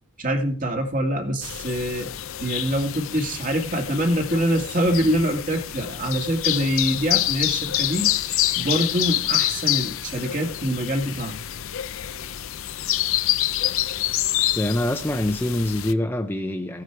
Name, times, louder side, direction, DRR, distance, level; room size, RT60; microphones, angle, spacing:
voice 1, 0.2-2.1 2.4-8.1 8.6-11.4, equal, 40° right, 2.2 m, -24 dB
sound 1, 1.4-15.9, left 13 dB, 70° left, 0.6 m, -27 dB
voice 2, 14.5-16.8, left 1 dB, 10° left, 0.7 m, -25 dB
16.0 x 9.9 x 4.7 m
head